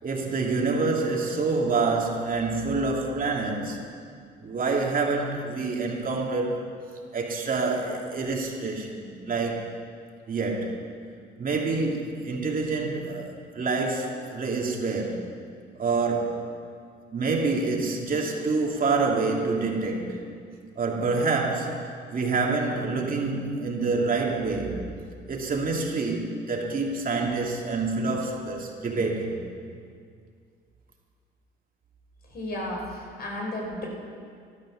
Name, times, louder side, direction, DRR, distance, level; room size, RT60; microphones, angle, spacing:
voice 1, 0.0-3.8 4.4-6.8 7.1-9.7 10.3-10.8 11.4-15.2 15.8-16.4 17.1-20.2 20.8-24.8 25.3-29.4, right 3 dB, 45° right, -1 dB, 2.8 m, -27 dB
voice 2, 32.3-33.9, left 1 dB, 50° left, -1 dB, 4.6 m, -33 dB
14.0 x 12.0 x 6.5 m, 2.2 s
cardioid pair, 85°, 20 cm